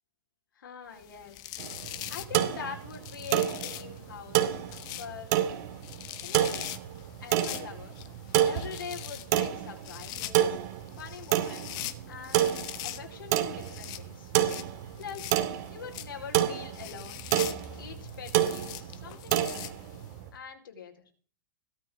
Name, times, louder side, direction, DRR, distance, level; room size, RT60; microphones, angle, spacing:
voice 1, 0.5-1.4 2.1-4.6 5.0-5.4 6.2-6.7 7.2-7.9 8.5-10.6 11.0-12.5 12.8-14.3 15.0-15.4 15.7-17.2 17.8-19.7 20.3-21.1, left 7 dB, 85° left, 2 dB, 4.6 m, -43 dB
sound 1, 1.0-20.2, left 14 dB, 35° left, 1.4 m, -43 dB
sound 2, 1.6-20.3, right 12 dB, 50° right, 2.2 m, -30 dB
17.0 x 12.5 x 3.8 m, 0.43 s
hypercardioid pair, 140°, 11 cm